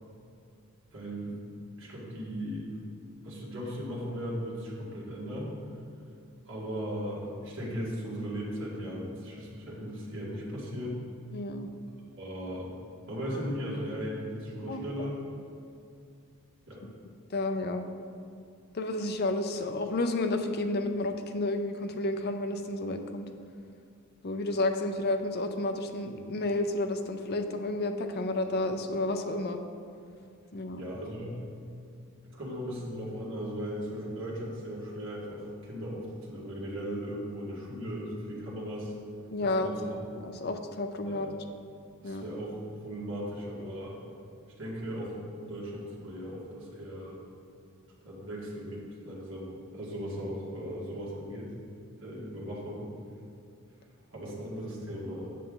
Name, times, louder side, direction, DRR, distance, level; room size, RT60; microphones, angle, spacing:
voice 1, 0.9-1.3 1.8-2.8 3.2-5.5 6.5-11.0 12.2-12.7 13.1-15.2 16.7-16.8 30.8-31.3 32.3-38.9 39.4-39.9 41.0-41.3 42.0-44.0 44.6-47.2 48.0-51.5 52.0-52.9 54.1-55.3, equal, 60° right, -6 dB, 1.9 m, -37 dB
voice 2, 11.3-11.7 14.7-14.8 17.3-17.9 18.7-23.3 24.2-29.6 30.5-30.8 39.3-39.7 40.1-41.3 42.0-42.4, left 2 dB, 45° left, 7 dB, 0.5 m, -31 dB
7.5 x 6.7 x 3.8 m, 2.5 s
head